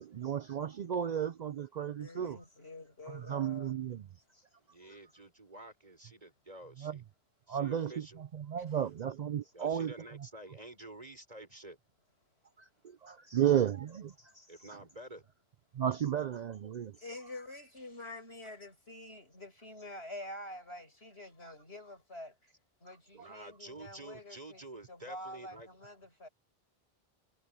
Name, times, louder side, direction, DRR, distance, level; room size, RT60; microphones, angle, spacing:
voice 1, 0.0-2.4 3.1-4.0 6.8-7.0 7.5-9.9 12.6-14.8 15.7-17.0 23.2-23.3, right 9 dB, 55° right, 0.5 m, -34 dB
voice 2, 2.0-3.8 8.6-8.7 13.7-13.8 17.0-22.5 22.8-24.6 24.9-26.3, left 1 dB, 85° left, 7.5 m, -47 dB
voice 3, 4.7-7.0 7.5-8.2 9.5-11.8 14.5-15.2 23.2-25.7, right 2 dB, 40° right, 4.7 m, -49 dB
omnidirectional pair, 1.0 m